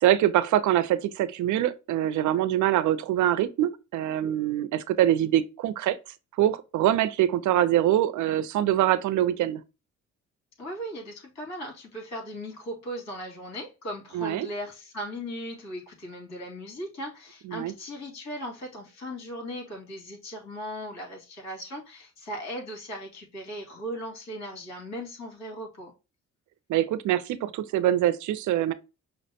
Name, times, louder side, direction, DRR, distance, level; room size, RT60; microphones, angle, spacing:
voice 1, 0.0-6.0 6.4-9.6 14.1-14.5 17.5-17.7 26.7-28.7, right 12 dB, 75° right, 0.5 m, -24 dB
voice 2, 10.6-25.9, equal, 65° left, 2.2 m, -38 dB
5.6 x 2.0 x 2.7 m
cardioid pair, 90°, 30 cm